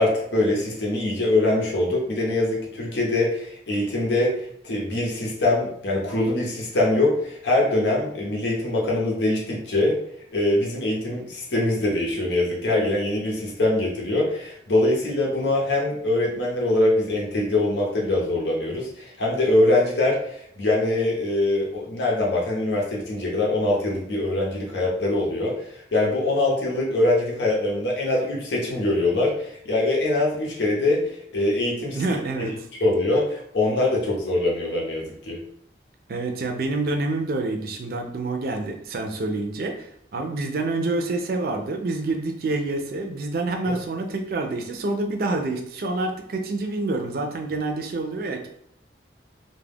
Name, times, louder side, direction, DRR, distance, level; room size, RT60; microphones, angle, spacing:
voice 1, 0.0-10.0 10.3-32.0 32.4-32.5 32.8-35.4, left 2 dB, 80° left, -3 dB, 0.7 m, -23 dB
voice 2, 32.0-32.5 36.1-48.5, right 2 dB, 55° right, 4 dB, 0.4 m, -27 dB
2.3 x 2.1 x 3.3 m, 0.70 s
head